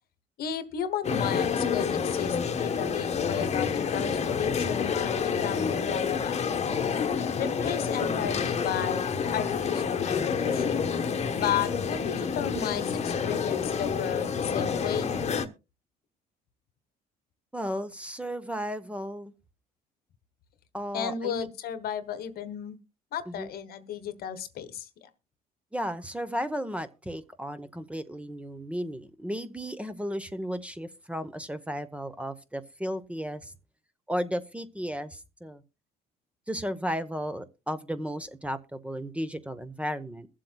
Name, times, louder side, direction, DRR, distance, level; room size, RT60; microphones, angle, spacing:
voice 1, 0.4-6.4 7.4-9.1 9.3-10.9 11.4-15.2 20.9-22.8 23.1-25.1, left 8 dB, 65° left, 12 dB, 1.2 m, -34 dB
sound 1, 1.0-15.5, left 6 dB, 40° left, 1.1 m, -28 dB
voice 2, 17.5-19.3 20.7-21.5 23.3-23.5 25.7-33.5 34.1-35.6 36.5-40.3, equal, 5° right, 11 dB, 0.8 m, -34 dB
22.5 x 7.5 x 2.2 m, 0.28 s
cardioid pair, 110°, 17 cm